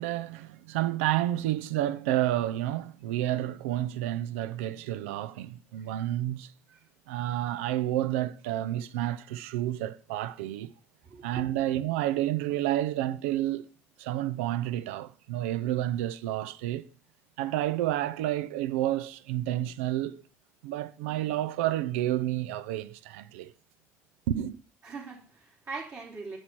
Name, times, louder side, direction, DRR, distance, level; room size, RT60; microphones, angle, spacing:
voice 1, 0.0-6.5 7.1-10.7 11.2-13.7 14.0-16.8 17.4-20.2 20.6-23.5 24.3-24.6, right 13 dB, 80° right, 0.5 m, -30 dB
voice 2, 11.0-11.4 24.8-26.4, right 4 dB, 50° right, 3.0 m, -41 dB
8.1 x 6.2 x 4.5 m
hypercardioid pair, 60°, 7 cm